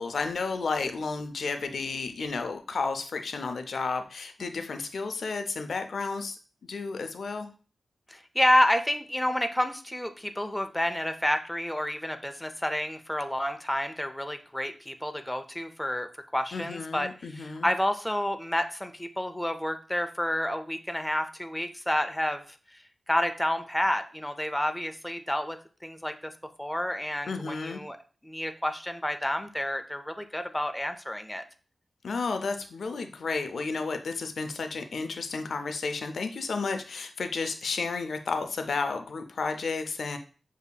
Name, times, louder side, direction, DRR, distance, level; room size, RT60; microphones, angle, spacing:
voice 1, 0.0-6.4 6.7-7.5 16.5-17.7 27.3-27.8 32.0-40.2, left 4 dB, 80° left, 7 dB, 0.4 m, -32 dB
voice 2, 8.1-22.4 23.1-26.3 26.6-28.0 28.2-31.4, left 1 dB, 5° left, 7 dB, 0.4 m, -29 dB
6.6 x 2.7 x 2.2 m, 0.37 s
wide cardioid pair, 80°, 0 cm